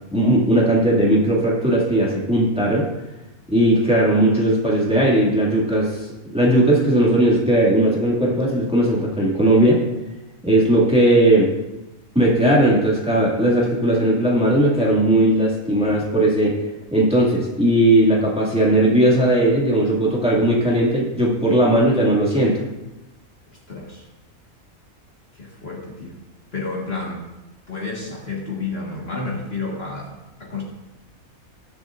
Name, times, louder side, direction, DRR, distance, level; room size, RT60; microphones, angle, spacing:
voice 1, 0.1-2.9 3.5-5.9 6.3-9.8 10.4-11.5 12.1-16.6 16.9-22.6, right 1 dB, 5° right, -5 dB, 2.2 m, -17 dB
voice 2, 23.7-24.1 25.3-26.2 26.5-27.3 27.7-30.6, left 3 dB, 45° left, -3 dB, 1.9 m, -30 dB
20.0 x 7.2 x 2.6 m, 1.0 s
omnidirectional pair, 1.5 m